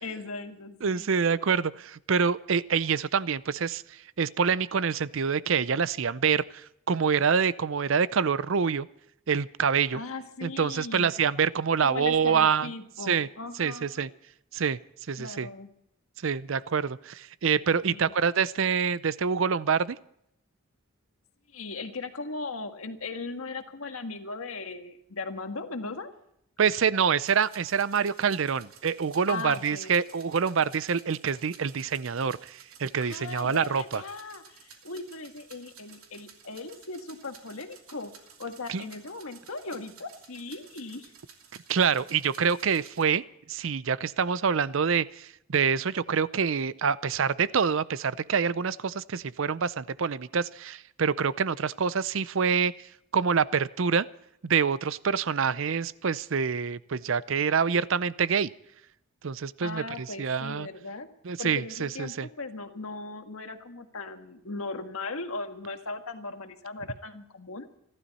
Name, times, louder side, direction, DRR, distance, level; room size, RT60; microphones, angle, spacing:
voice 1, 0.0-1.1 9.9-11.1 11.8-14.1 15.2-15.7 17.8-18.1 21.5-26.1 29.3-30.0 33.0-38.1 38.4-41.1 59.6-61.1 61.4-67.7, left 3 dB, 85° left, 6 dB, 1.6 m, -38 dB
voice 2, 0.8-8.9 9.3-10.0 10.4-12.7 13.0-13.3 13.6-14.1 14.5-14.8 15.1-15.5 16.2-20.0 26.6-34.0 38.7-38.9 41.7-43.2 43.5-52.9 53.1-54.1 54.4-58.5 59.2-60.7 61.2-62.3, right 6 dB, 65° right, 18 dB, 0.5 m, -26 dB
sound 1, 27.2-43.0, right 7 dB, 90° right, 2.9 m, -53 dB
27.5 x 12.5 x 4.2 m, 0.75 s
head